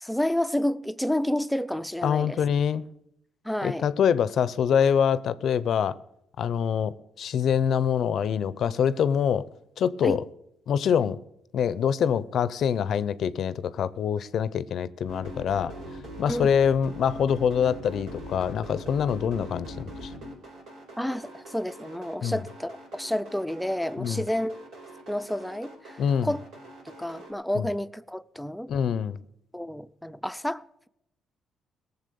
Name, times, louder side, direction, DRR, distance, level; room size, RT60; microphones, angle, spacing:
voice 1, 0.0-2.4 3.4-3.9 10.0-10.2 16.3-16.5 21.0-24.6 25.1-26.4 26.9-28.7 29.5-30.9, left 1 dB, ahead, 0.5 m, -30 dB
voice 2, 2.0-2.8 3.6-6.0 6.4-9.4 9.8-10.2 10.7-11.2 11.5-15.7 16.2-20.1 22.2-22.4 24.0-24.2 26.0-26.3 27.5-27.7 28.7-29.2, left 8 dB, 65° left, 0.5 m, -25 dB
sound 1, 15.1-27.3, equal, 85° right, 4.6 m, -42 dB
18.0 x 7.0 x 6.9 m
cardioid pair, 90°, 0 cm